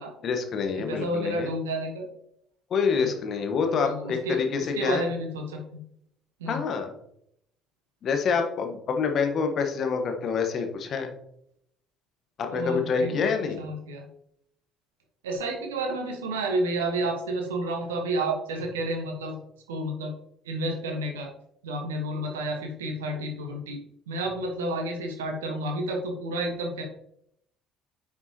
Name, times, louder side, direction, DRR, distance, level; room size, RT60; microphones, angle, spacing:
voice 1, 0.2-1.5 2.7-5.0 6.5-6.9 8.0-11.1 12.4-13.6, left 5 dB, 45° left, 4 dB, 1.3 m, -27 dB
voice 2, 0.8-2.1 2.9-3.4 3.7-5.8 6.4-6.6 12.5-14.1 15.2-19.4 19.7-20.1 20.4-21.3 21.6-26.8, right 1 dB, 75° right, 2 dB, 1.5 m, -31 dB
9.5 x 6.0 x 3.0 m, 0.74 s
figure-of-eight pair, 55°, 0 cm